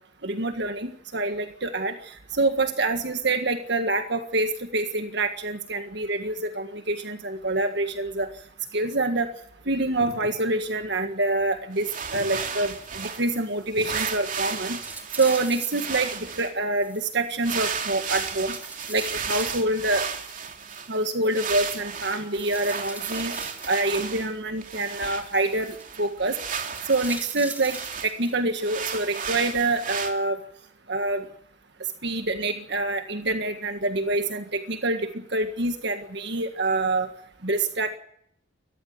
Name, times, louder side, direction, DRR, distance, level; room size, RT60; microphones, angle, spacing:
voice 1, 0.2-8.3 8.7-9.3 9.7-14.8 15.2-18.6 18.9-20.1 20.9-23.3 23.7-26.4 26.8-27.8 28.0-30.4 30.9-31.3 32.0-37.1 37.4-38.0, right 2 dB, 55° right, 6 dB, 1.7 m, -26 dB
sound 1, 9.9-14.9, left 1 dB, 85° left, 2.4 m, -44 dB
sound 2, 11.8-13.4 13.8-16.5 17.4-21.0 21.3-24.3 24.6-28.1 28.6-30.1, right 6 dB, 40° right, 3.1 m, -34 dB
sound 3, 12.8-13.5 13.8-13.9 14.3-14.4 14.8-16.1 16.8-18.1 18.5-19.6 20.2-21.4 22.3-24.1 24.8-25.8 26.7-28.4 28.9-29.9 30.4-30.5, right 2 dB, 10° right, 2.3 m, -43 dB
20.0 x 14.5 x 9.6 m, 0.68 s
head